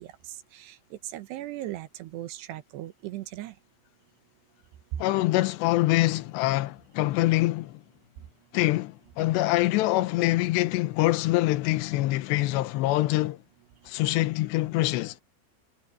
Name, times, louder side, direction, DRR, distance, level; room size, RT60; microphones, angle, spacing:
voice 1, 1.1-3.5, right 15 dB, 75° right, 2.8 m, -37 dB
voice 2, 5.0-7.8 8.5-13.4 13.9-15.2, left 17 dB, 75° left, 2.9 m, -25 dB
omnidirectional pair, 5.6 m